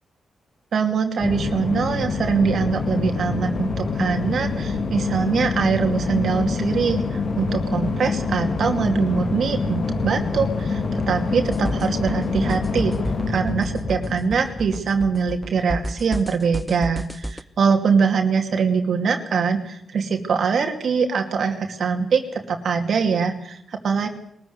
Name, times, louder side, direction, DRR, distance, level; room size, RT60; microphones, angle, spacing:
voice 1, 0.7-13.0 13.3-24.1, right 5 dB, 70° right, 5 dB, 2.5 m, -23 dB
sound 1, 1.2-15.6, left 4 dB, 65° left, 3.3 m, -26 dB
sound 2, 11.4-17.4, right 1 dB, 5° right, 1.1 m, -32 dB
21.5 x 14.0 x 9.6 m, 0.69 s
cardioid pair, 75°, 0 cm